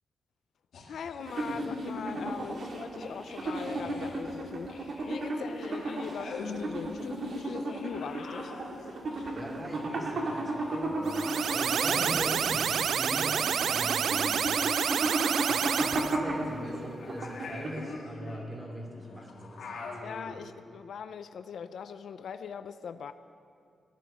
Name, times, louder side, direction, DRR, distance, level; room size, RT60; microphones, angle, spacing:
sound 1, 0.7-2.7 3.0-13.2 13.5-20.4, left 3 dB, 85° left, 2.8 m, -44 dB
voice 1, 0.9-8.5 20.0-23.1, left 7 dB, 65° left, 11 dB, 0.5 m, -41 dB
sound 2, 1.2-18.1, right 2 dB, 55° right, 2.1 m, -34 dB
voice 2, 9.3-14.4 15.4-19.9, equal, 15° right, 0 dB, 2.6 m, -41 dB
sound 3, 11.1-16.2, right 8 dB, 75° right, 0.3 m, -28 dB
17.0 x 11.0 x 6.6 m, 2.4 s
wide cardioid pair, 150°, 0 cm